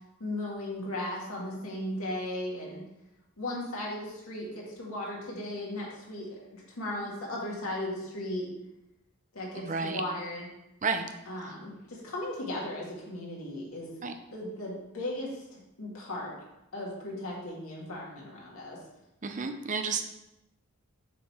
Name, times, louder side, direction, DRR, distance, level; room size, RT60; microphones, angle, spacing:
voice 1, 0.2-2.8 3.4-8.5 9.3-10.5 11.3-13.9 14.3-16.4 16.7-18.8, left 1 dB, 85° left, -4 dB, 2.0 m, -36 dB
voice 2, 9.6-10.0 10.8-11.1 14.0-14.1 19.2-20.0, right 5 dB, 35° right, 7 dB, 0.5 m, -31 dB
7.3 x 3.8 x 4.4 m, 0.90 s
head